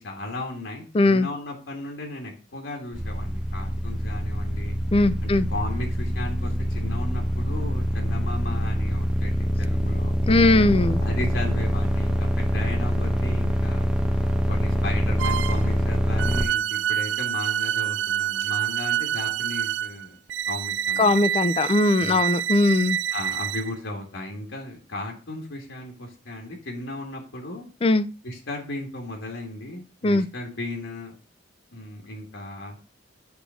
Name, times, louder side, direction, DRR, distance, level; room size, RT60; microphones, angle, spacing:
voice 1, 0.0-4.8 5.2-9.3 9.6-10.2 11.0-13.9 14.5-20.2 20.5-21.2 22.0-22.2 23.1-27.7 28.2-31.1 31.7-32.8, left 1 dB, 90° left, 1.8 m, -35 dB
voice 2, 0.9-1.3 4.9-5.5 10.3-11.0 21.0-23.0 27.8-28.1 30.0-30.3, left 2 dB, 30° left, 0.4 m, -19 dB
sound 1, 2.9-16.4, equal, 5° right, 0.9 m, -25 dB
sound 2, 15.2-15.7 16.2-23.7, right 10 dB, 70° right, 0.4 m, -27 dB
8.1 x 3.3 x 6.2 m
head